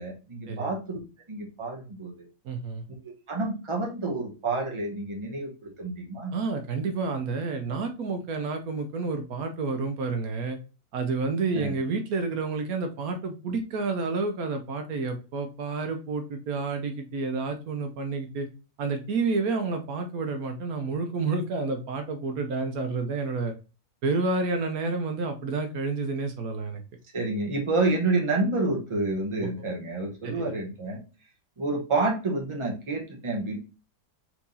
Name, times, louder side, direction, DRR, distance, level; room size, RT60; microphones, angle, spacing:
voice 1, 0.0-2.3 3.0-6.3 11.5-11.7 27.1-31.0 31.6-33.6, right 2 dB, 20° right, -1 dB, 1.1 m, -29 dB
voice 2, 2.4-2.8 6.3-10.6 10.9-18.5 18.8-23.5 24.0-26.8 29.4-29.5 30.2-30.5, right 4 dB, 75° right, 5 dB, 1.2 m, -29 dB
4.5 x 3.5 x 2.7 m, 0.31 s
omnidirectional pair, 1.6 m